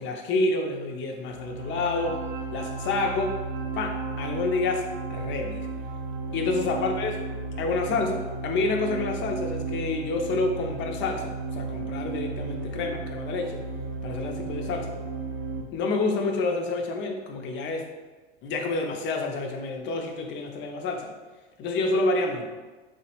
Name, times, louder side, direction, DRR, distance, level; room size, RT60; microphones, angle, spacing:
voice 1, 0.0-2.2 2.5-3.4 3.7-5.7 6.3-7.1 7.6-13.6 14.0-15.0 15.7-17.9 18.4-21.1 21.6-22.5, left 3 dB, 35° left, 3 dB, 0.4 m, -28 dB
sound 1, 1.3-15.6, right 3 dB, 40° right, 0.5 m, -34 dB
3.1 x 2.1 x 2.8 m, 1.3 s
supercardioid pair, 110°, 33 cm